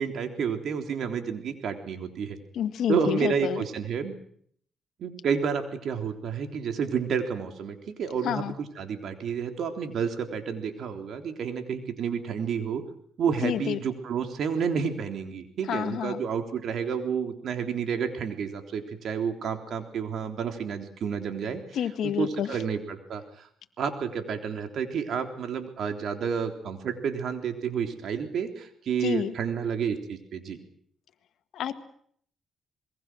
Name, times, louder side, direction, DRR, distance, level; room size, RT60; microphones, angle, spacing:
voice 1, 0.0-2.4 2.9-4.1 5.0-8.4 8.8-12.8 13.2-21.6 22.0-23.5 23.8-30.6, right 6 dB, 70° right, 5 dB, 3.6 m, -30 dB
voice 2, 2.5-3.6 8.2-8.5 13.4-13.8 15.7-16.2 21.7-22.6 29.0-29.3 31.5-31.8, left 9 dB, 75° left, 10 dB, 1.7 m, -29 dB
27.0 x 21.5 x 6.3 m, 0.63 s
cardioid pair, 75°, 0 cm